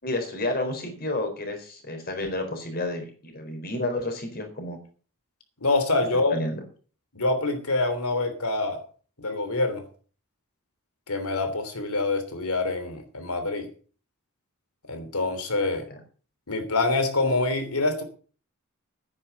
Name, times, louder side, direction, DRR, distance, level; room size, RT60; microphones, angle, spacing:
voice 1, 0.0-4.8 6.3-6.6 15.9-16.0, left 2 dB, 45° left, 4.3 m, -30 dB
voice 2, 5.6-6.3 7.1-8.8 9.2-9.8 11.1-13.7 14.9-15.8 16.5-18.0, left 2 dB, 80° left, 3.2 m, -25 dB
10.0 x 9.8 x 6.7 m
head